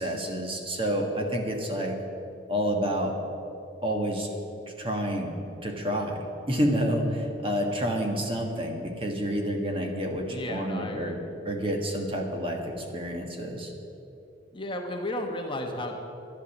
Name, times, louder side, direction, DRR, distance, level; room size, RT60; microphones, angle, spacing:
voice 1, 0.0-2.0 2.5-3.2 3.8-4.3 4.8-5.4 5.6-11.2 11.4-13.7, equal, 30° right, 2 dB, 1.5 m, -29 dB
voice 2, 10.3-11.2 14.5-16.0, left 1 dB, 25° left, 3 dB, 1.0 m, -33 dB
12.0 x 11.0 x 7.2 m, 2.9 s
head